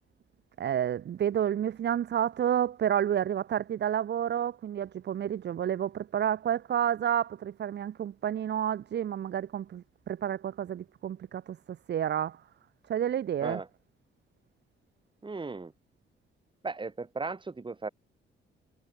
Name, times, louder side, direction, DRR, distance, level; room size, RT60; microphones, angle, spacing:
voice 1, 0.6-11.6 11.9-12.4 12.9-13.6, right 10 dB, 60° right, 2.0 m, -30 dB
voice 2, 15.2-15.7 16.6-17.9, right 3 dB, 25° right, 3.9 m, -36 dB
cardioid pair, 90°, 20 cm